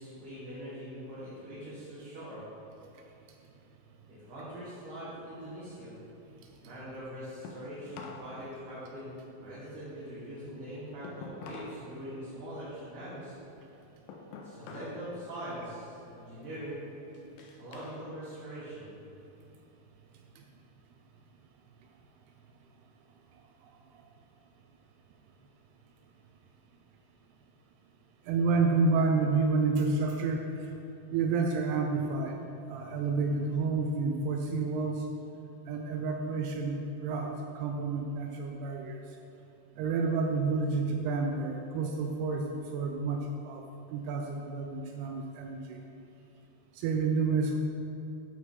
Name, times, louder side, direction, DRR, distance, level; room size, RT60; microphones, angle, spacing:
voice 1, 0.0-2.4 4.1-5.9 6.6-9.1 9.4-13.4 14.4-16.8 17.6-19.0, equal, 60° right, -10 dB, 2.8 m, -42 dB
sound 1, 5.2-8.3 8.6-11.9 12.2-15.1 15.4-15.8 16.4-18.0 18.4-19.5, left 5 dB, 80° left, 2.1 m, -49 dB
voice 2, 28.3-30.7 31.1-32.4 32.7-35.1 35.7-39.0 39.8-43.6 43.9-45.8 46.7-47.6, right 4 dB, 85° right, 2 dB, 2.6 m, -29 dB
9.5 x 6.0 x 3.6 m, 2.8 s
omnidirectional pair, 4.7 m